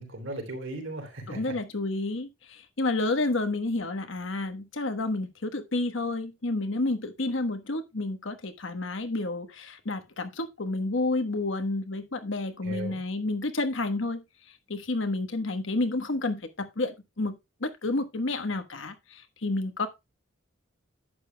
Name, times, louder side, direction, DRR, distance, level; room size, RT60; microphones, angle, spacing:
voice 1, 0.0-1.5 12.6-13.0, right 2 dB, 70° right, 3.4 m, -37 dB
voice 2, 1.3-14.2 14.7-19.9, left 2 dB, 75° left, 1.3 m, -30 dB
11.0 x 9.0 x 2.3 m
head